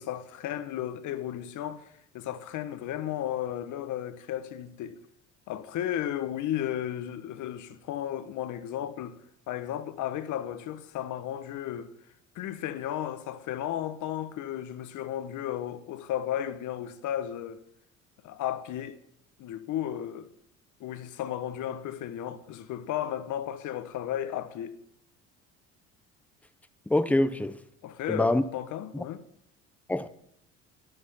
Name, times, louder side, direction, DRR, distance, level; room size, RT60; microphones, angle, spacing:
voice 1, 0.0-5.0 5.5-9.2 9.5-11.9 12.3-17.6 18.2-19.0 19.4-20.3 20.8-24.8 27.8-29.3, left 11 dB, 60° left, 1.3 m, -34 dB
voice 2, 26.9-27.6 28.1-28.4 29.9-30.1, left 1 dB, 5° left, 0.9 m, -24 dB
12.0 x 11.0 x 5.7 m
supercardioid pair, 75°, 33 cm